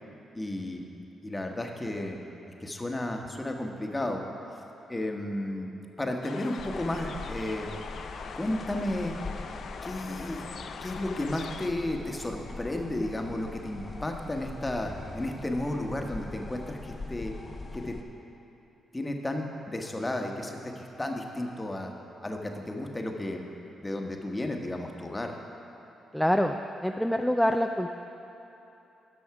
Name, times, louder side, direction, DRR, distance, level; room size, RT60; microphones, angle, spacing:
voice 1, 0.3-0.9 1.2-2.2 2.6-4.2 4.9-5.7 6.0-7.7 8.3-9.1 9.8-10.5 10.8-17.3 17.7-18.0 18.9-21.9 22.2-23.4 23.8-25.3, left 1 dB, 20° left, 2 dB, 1.1 m, -33 dB
sound 1, 6.2-11.7, left 5 dB, 65° left, 0.4 m, -42 dB
sound 2, 6.6-18.0, left 3 dB, 40° left, 0.8 m, -42 dB
voice 2, 26.1-28.0, equal, 5° left, 4 dB, 0.4 m, -26 dB
10.5 x 6.2 x 4.7 m, 3.0 s
supercardioid pair, 55°, 0 cm